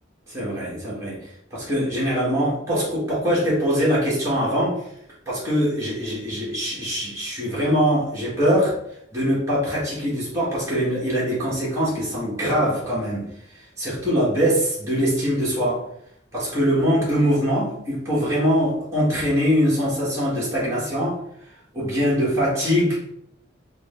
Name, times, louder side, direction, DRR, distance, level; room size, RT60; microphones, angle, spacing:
voice 1, 0.3-1.2 1.5-4.8 5.3-8.7 9.1-13.3 13.8-15.8 16.3-21.2 21.7-23.0, equal, 15° right, -8 dB, 1.6 m, -22 dB
6.3 x 2.3 x 3.7 m, 0.72 s
head